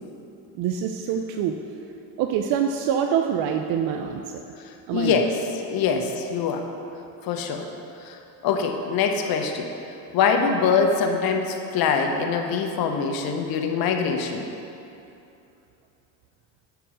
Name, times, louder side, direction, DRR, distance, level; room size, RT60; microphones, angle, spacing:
voice 1, 0.5-1.6 2.2-4.4 4.9-5.2 5.9-6.1, right 8 dB, 60° right, 5 dB, 0.5 m, -25 dB
voice 2, 4.9-5.3 5.7-6.7 7.2-7.6 8.0-8.2 8.4-9.7 10.1-14.5, left 5 dB, 60° left, 4 dB, 0.8 m, -23 dB
6.9 x 4.6 x 5.0 m, 2.7 s
supercardioid pair, 100°, 41 cm